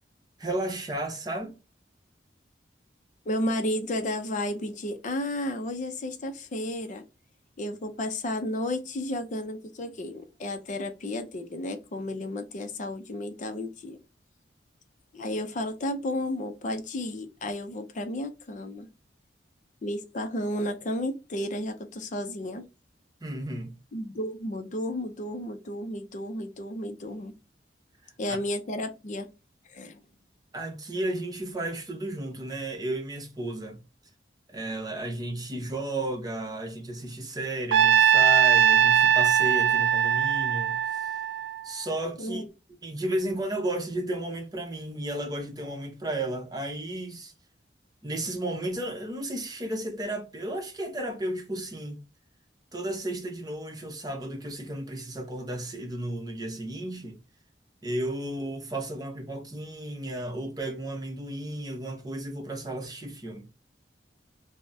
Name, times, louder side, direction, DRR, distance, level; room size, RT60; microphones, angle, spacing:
voice 1, 0.4-1.6 23.2-23.8 30.5-33.8 34.5-41.1 41.6-42.4 42.8-47.3 48.0-52.0 52.7-57.2 57.8-63.5, right 1 dB, 20° right, 0.7 m, -33 dB
voice 2, 3.3-7.0 7.6-14.0 15.1-18.9 19.8-22.6 23.9-27.3 28.2-29.3 29.7-30.0 42.2-42.4, left 1 dB, 45° left, 0.5 m, -32 dB
Trumpet, 37.7-41.9, right 9 dB, 85° right, 0.3 m, -21 dB
3.4 x 2.0 x 2.5 m
head